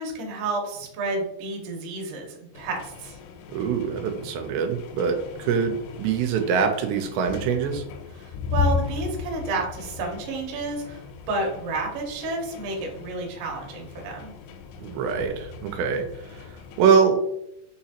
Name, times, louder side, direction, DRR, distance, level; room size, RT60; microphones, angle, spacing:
voice 1, 0.0-3.2 8.2-14.3, right 3 dB, 70° right, 0 dB, 2.1 m, -31 dB
sound 1, 2.5-16.9, left 6 dB, 90° left, 2.8 m, -35 dB
voice 2, 3.5-7.8 14.8-16.0 16.8-17.2, right 6 dB, 85° right, 5 dB, 2.8 m, -23 dB
6.3 x 2.9 x 2.9 m, 0.79 s
omnidirectional pair, 4.9 m